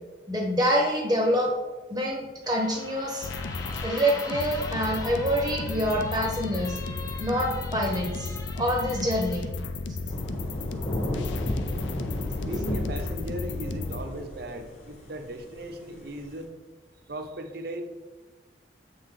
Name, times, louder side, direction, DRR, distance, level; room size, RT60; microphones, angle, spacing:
voice 1, 0.3-1.5 1.9-3.3 3.8-6.8 7.2-9.5, equal, 20° right, 0 dB, 0.7 m, -26 dB
sound 1, 2.4-9.5, left 2 dB, 20° left, 0.5 m, -42 dB
sound 2, 3.2-14.0, left 3 dB, 80° left, 0.4 m, -34 dB
Thunder / Rain, 10.1-16.4, left 1 dB, 40° left, 1.0 m, -33 dB
voice 2, 12.4-16.5 17.1-17.8, right 1 dB, 55° right, 6 dB, 0.6 m, -37 dB
7.4 x 3.4 x 3.6 m, 1.3 s
head